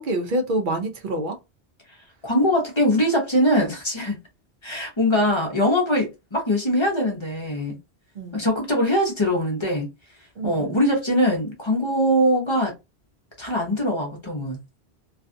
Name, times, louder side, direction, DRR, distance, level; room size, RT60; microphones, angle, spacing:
voice 1, 0.0-1.4 8.2-8.4 10.4-10.8, right 1 dB, 60° right, 0.6 m, -27 dB
voice 2, 2.2-4.2 4.6-7.8 8.3-9.9 10.4-12.7 13.4-14.6, equal, 30° left, 0.6 m, -22 dB
2.5 x 2.3 x 2.5 m
omnidirectional pair, 1.1 m